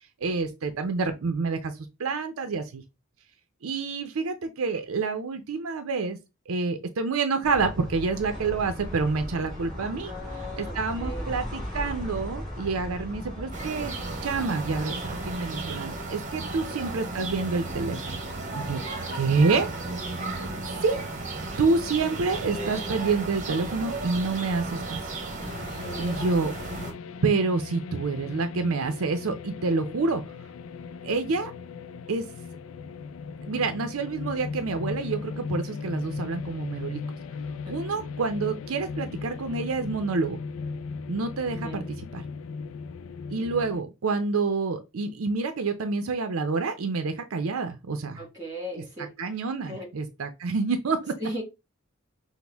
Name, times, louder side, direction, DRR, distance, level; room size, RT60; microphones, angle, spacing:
voice 1, 0.2-2.8 3.6-6.2 6.5-10.1 10.6-13.9 14.2-18.2 18.5-18.8 19.1-19.7 20.3-20.5 20.8-21.0 21.6-25.0 26.0-26.5 27.2-30.2 31.0-31.5 32.1-32.2 33.4-37.0 37.7-40.4 41.1-42.2 43.3-48.3 48.7-48.8 49.2-51.1, right 4 dB, 75° right, 0.5 m, -28 dB
sound 1, 7.4-15.3, equal, ahead, 2.7 m, -37 dB
voice 2, 10.1-11.3 16.7-16.8 25.8-26.4 37.6-37.7 41.6-41.8 48.2-49.1 49.7-49.9 51.2-51.4, equal, 20° right, 2.2 m, -37 dB
sound 2, 13.5-26.9, right 2 dB, 35° right, 1.0 m, -34 dB
sound 3, 25.4-43.8, left 4 dB, 70° left, 0.4 m, -37 dB
6.0 x 2.1 x 3.4 m
head